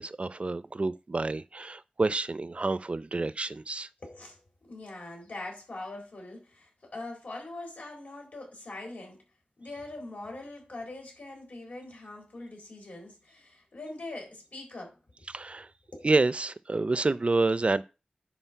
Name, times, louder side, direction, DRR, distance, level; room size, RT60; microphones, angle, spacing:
voice 1, 0.0-3.9 15.3-15.7 16.0-17.8, right 3 dB, 45° right, 0.5 m, -28 dB
voice 2, 4.0-9.2 9.6-15.0 15.9-16.1, left 2 dB, 75° left, 3.8 m, -42 dB
10.0 x 4.5 x 4.6 m
wide cardioid pair, 80°, 3 cm